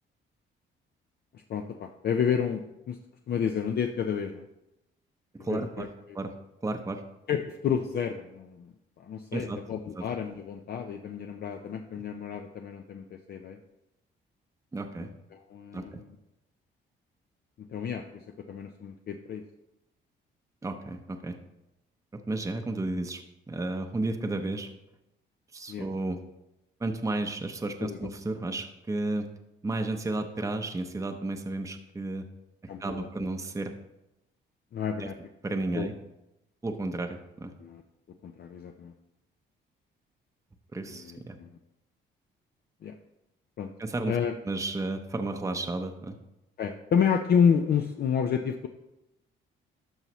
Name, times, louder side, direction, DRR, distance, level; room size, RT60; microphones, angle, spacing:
voice 1, 1.5-3.0 3.3-4.5 5.4-5.9 7.3-13.6 15.0-16.1 17.6-19.4 25.7-25.9 27.8-28.0 32.7-33.1 34.7-35.1 35.7-35.9 37.6-37.8 38.2-38.9 40.9-41.6 42.8-43.0 43.6-43.7 44.0-44.4 46.6-48.7, left 7 dB, 55° left, 5 dB, 0.6 m, -30 dB
voice 2, 5.3-5.9 6.1-6.3 6.6-7.0 9.3-9.6 10.0-10.1 14.7-15.1 15.7-16.0 20.6-21.4 22.1-23.2 23.5-24.7 25.5-26.2 26.8-29.3 29.6-32.3 32.8-33.7 35.0-35.1 35.4-35.9 36.6-37.5 40.7-41.4 43.8-44.2 44.5-46.2, right 2 dB, 15° right, 5 dB, 0.7 m, -32 dB
12.5 x 5.5 x 3.1 m, 0.91 s
cardioid pair, 90°, 20 cm